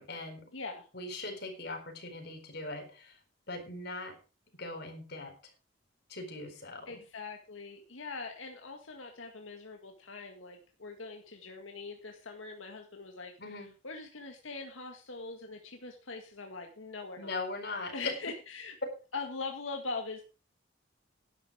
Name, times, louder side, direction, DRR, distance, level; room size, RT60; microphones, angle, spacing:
voice 1, 0.0-0.5 0.9-3.2 3.5-4.2 4.6-5.3 6.1-7.0 13.4-13.7 17.2-18.1, left 2 dB, 55° left, 5 dB, 4.3 m, -40 dB
voice 2, 0.5-0.9 6.9-17.4 17.7-18.7 19.1-20.2, left 4 dB, 90° left, 4 dB, 1.8 m, -42 dB
11.0 x 10.5 x 5.0 m, 0.33 s
head